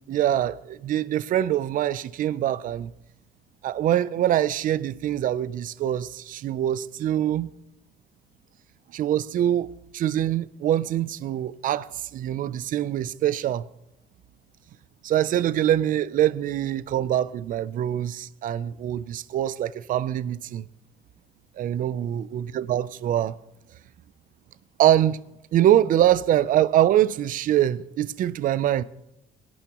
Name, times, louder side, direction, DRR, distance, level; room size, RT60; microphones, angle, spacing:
voice 1, 0.1-2.9 3.6-7.5 8.9-13.6 15.0-20.6 21.6-23.3 24.8-25.2 25.5-28.8, right 11 dB, 55° right, 0.5 m, -24 dB
21.5 x 11.5 x 3.0 m
cardioid pair, 110°, 17 cm